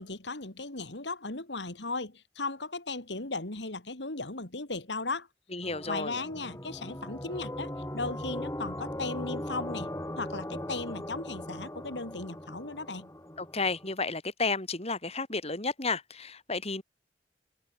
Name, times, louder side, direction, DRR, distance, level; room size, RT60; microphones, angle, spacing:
voice 1, 0.0-5.3 5.9-13.1, left 3 dB, 80° left, 3.1 m, -36 dB
voice 2, 5.5-6.2 13.4-16.8, left 3 dB, 35° left, 5.8 m, -32 dB
sound 1, 5.6-13.9, left 1 dB, 15° left, 7.9 m, -39 dB
head